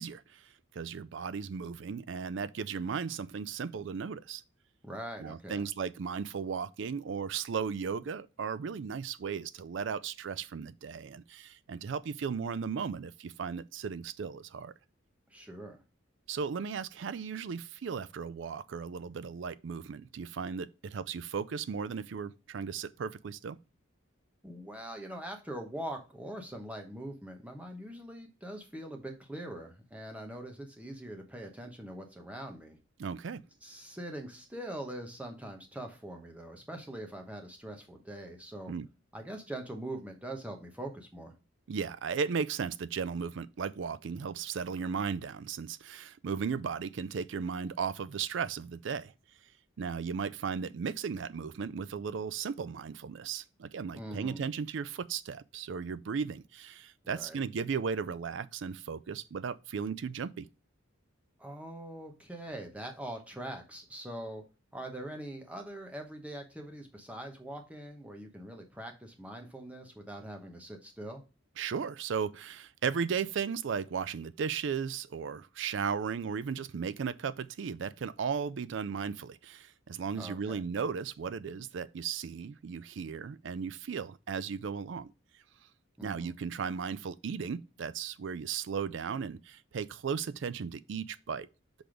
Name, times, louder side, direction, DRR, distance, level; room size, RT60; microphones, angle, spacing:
voice 1, 0.0-4.4 5.2-14.7 16.3-23.6 33.0-33.4 38.7-38.9 41.7-49.1 49.8-60.5 71.6-85.1 86.0-91.5, right 6 dB, 60° right, 0.4 m, -36 dB
voice 2, 4.8-5.7 15.3-15.8 24.4-32.8 33.6-38.7 39.1-41.3 53.9-54.4 57.0-57.4 61.4-64.4 64.7-71.2 80.1-80.6 86.0-86.3, right 1 dB, 5° right, 0.9 m, -43 dB
6.0 x 3.4 x 4.9 m
head